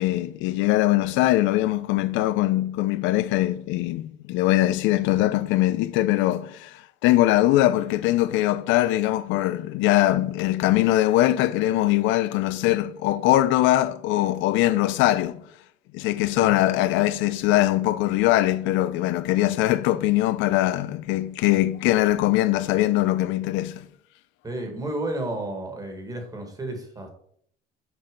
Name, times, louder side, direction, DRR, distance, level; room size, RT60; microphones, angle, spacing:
voice 1, 0.0-15.4 15.9-23.9, left 15 dB, 75° left, 0.5 m, -22 dB
voice 2, 24.4-27.1, right 1 dB, 20° right, 1.7 m, -32 dB
6.5 x 4.3 x 5.1 m
cardioid pair, 135°, 20 cm